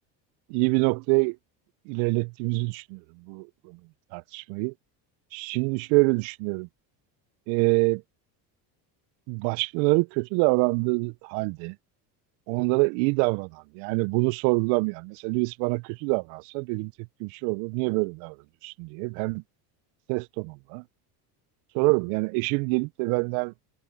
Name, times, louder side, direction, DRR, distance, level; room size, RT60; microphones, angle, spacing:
voice 1, 0.5-1.4 1.9-3.0 3.3-3.8 4.1-4.7 5.3-6.7 7.5-8.0 9.3-11.8 12.5-16.9 17.2-18.4 18.6-19.4 20.1-20.8 21.7-23.5, right 31 dB, 70° right, 0.6 m, -26 dB
supercardioid pair, 85°, 49 cm